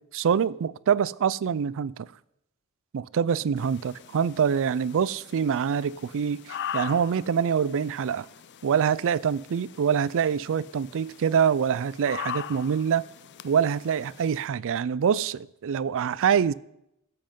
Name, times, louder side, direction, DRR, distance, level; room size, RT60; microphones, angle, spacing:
voice 1, 0.1-2.1 2.9-8.3 8.6-13.0 13.4-16.5, right 7 dB, 60° right, 0.4 m, -25 dB
sound 1, 3.6-14.5, left 9 dB, 50° left, 0.5 m, -41 dB
17.0 x 7.8 x 5.3 m
head